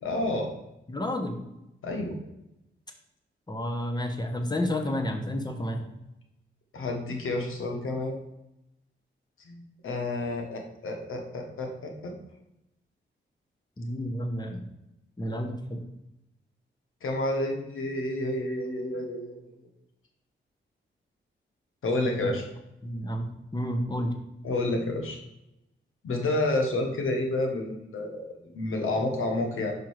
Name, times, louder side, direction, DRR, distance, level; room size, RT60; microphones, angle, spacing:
voice 1, 0.0-0.5 1.8-2.2 6.7-8.2 9.4-12.1 17.0-19.5 21.8-22.4 24.4-25.2 26.0-28.3 28.5-29.7, left 2 dB, 85° left, 3 dB, 1.2 m, -30 dB
voice 2, 0.9-1.4 3.5-5.9 13.8-14.6 15.2-15.8 22.2-22.3 22.8-24.1, left 1 dB, 20° left, 4 dB, 1.1 m, -30 dB
5.4 x 5.1 x 4.7 m, 0.88 s
cardioid pair, 75°, 21 cm